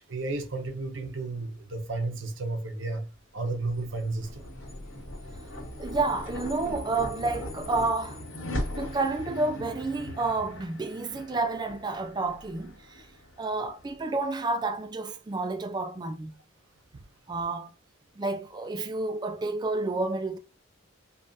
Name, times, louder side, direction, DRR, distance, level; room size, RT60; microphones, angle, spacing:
voice 1, 0.0-4.4, right 3 dB, 65° right, 0.9 m, -33 dB
sound 1, 3.5-14.0, left 1 dB, 80° left, 1.7 m, -39 dB
voice 2, 5.8-8.2 8.8-13.1 13.4-16.3 17.3-17.7 18.2-20.4, right 3 dB, 20° right, 0.3 m, -30 dB
5.2 x 2.4 x 2.6 m
head